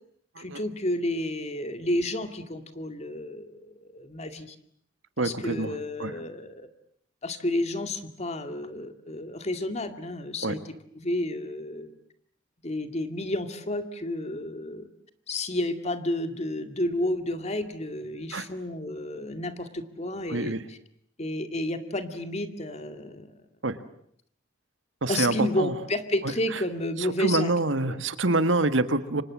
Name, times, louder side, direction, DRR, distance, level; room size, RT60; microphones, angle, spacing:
voice 1, 0.4-4.6 5.2-6.7 7.2-12.0 12.6-14.9 15.3-20.8 21.2-23.3 25.1-27.5 27.9-28.0, left 1 dB, 35° left, 9 dB, 2.2 m, -31 dB
voice 2, 5.2-5.7 6.0-6.1 10.4-10.5 18.3-18.4 20.3-20.6 23.6-23.7 25.0-25.7 27.0-29.2, right 2 dB, 80° right, 12 dB, 1.7 m, -26 dB
29.5 x 25.5 x 7.5 m, 0.68 s
head